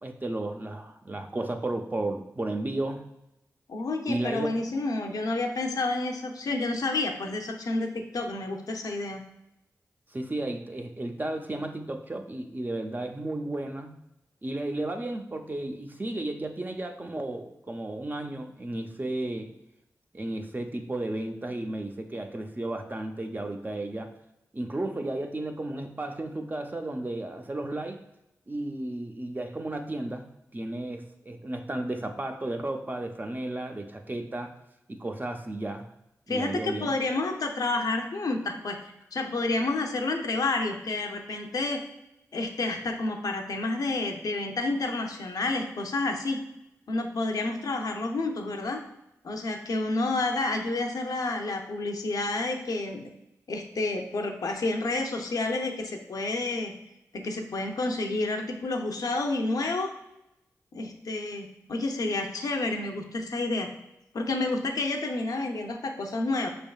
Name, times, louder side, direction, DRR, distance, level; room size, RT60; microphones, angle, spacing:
voice 1, 0.0-3.0 4.1-4.5 10.1-14.0 14.4-19.5 20.1-24.1 24.5-28.0 28.5-30.3 30.5-34.5 34.9-35.9 36.3-36.9, right 2 dB, 30° right, 4 dB, 0.5 m, -33 dB
voice 2, 3.7-9.2 36.3-38.8 39.1-41.8 42.3-46.4 46.9-48.8 49.2-53.1 53.5-56.7 57.1-59.9 60.7-63.7 64.1-66.5, left 2 dB, 70° left, 3 dB, 0.6 m, -29 dB
5.2 x 3.4 x 2.3 m, 0.89 s
cardioid pair, 45°, 6 cm